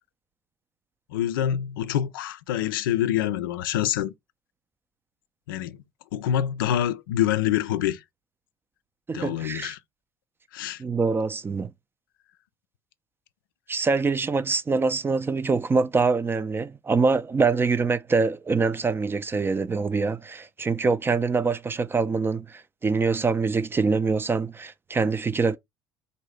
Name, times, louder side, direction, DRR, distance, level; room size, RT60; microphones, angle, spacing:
voice 1, 1.1-4.1 5.5-5.8 6.1-8.0 9.1-9.8 10.5-10.8, left 11 dB, 70° left, 0.4 m, -26 dB
voice 2, 9.1-9.7 10.8-11.7 13.7-25.6, right 4 dB, 20° right, 0.4 m, -24 dB
4.0 x 2.6 x 3.2 m
figure-of-eight pair, 60°, 12 cm